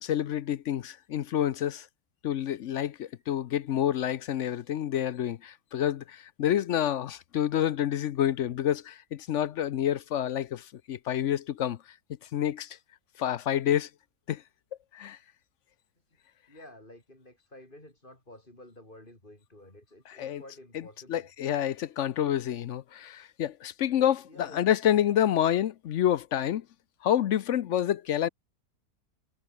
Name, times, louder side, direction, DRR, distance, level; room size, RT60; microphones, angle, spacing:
voice 1, 0.0-1.9 2.2-11.8 12.3-12.8 13.2-13.9 14.3-14.4 14.9-15.2 20.2-20.4 21.1-26.6 27.0-28.3, left 10 dB, 60° left, 0.9 m, -28 dB
voice 2, 16.5-21.3 24.2-24.6, left 1 dB, 30° left, 6.6 m, -51 dB
omnidirectional pair, 1.6 m